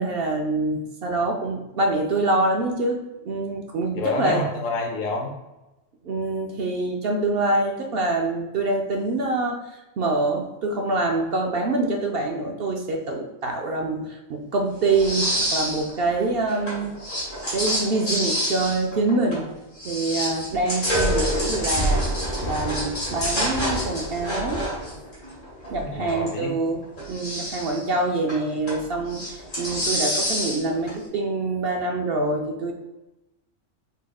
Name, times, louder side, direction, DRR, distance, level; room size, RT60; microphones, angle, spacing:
voice 1, 0.0-4.4 6.0-16.9 17.5-19.4 19.8-22.0 22.4-24.6 25.7-26.8 27.1-32.7, right 2 dB, 60° right, 2 dB, 0.7 m, -25 dB
voice 2, 3.9-5.3 25.8-26.5, left 2 dB, 85° left, 2 dB, 1.1 m, -28 dB
sound 1, 14.9-15.9 16.2-19.5 19.8-26.3 26.8-27.9 28.3-28.8 29.1-30.9, equal, 40° left, 1.8 m, -27 dB
4.8 x 4.2 x 2.3 m, 1.0 s
omnidirectional pair, 1.3 m